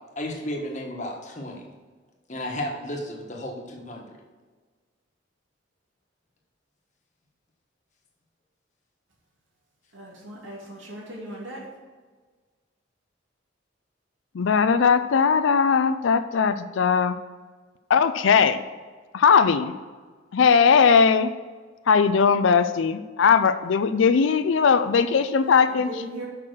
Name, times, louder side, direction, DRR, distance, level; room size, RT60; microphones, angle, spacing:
voice 1, 0.1-1.7 2.3-4.2, left 1 dB, 40° left, 0 dB, 1.3 m, -33 dB
voice 2, 9.9-11.6 25.7-26.3, equal, 80° right, -3 dB, 2.6 m, -38 dB
voice 3, 14.3-17.2 17.9-18.6 19.1-19.7 20.3-21.3 21.9-26.0, left 6 dB, 75° left, 11 dB, 0.4 m, -19 dB
6.6 x 5.8 x 6.2 m, 1.4 s
head